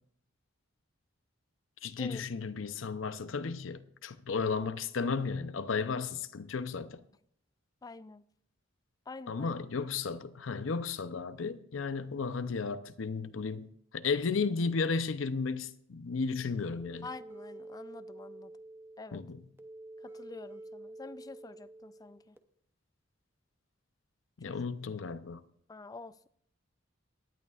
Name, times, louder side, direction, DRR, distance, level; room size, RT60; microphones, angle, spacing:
voice 1, 1.8-7.0 9.3-13.7 13.9-17.1 19.1-19.4 24.4-25.4, left 4 dB, 75° left, 0.6 m, -34 dB
voice 2, 7.8-8.2 9.1-9.5 17.0-18.5 19.0-19.2 20.0-22.4 24.5-24.7 25.7-26.3, left 3 dB, 20° left, 0.3 m, -47 dB
sound 1, 16.8-22.4, right 2 dB, 10° right, 0.6 m, -49 dB
18.0 x 11.0 x 2.4 m
head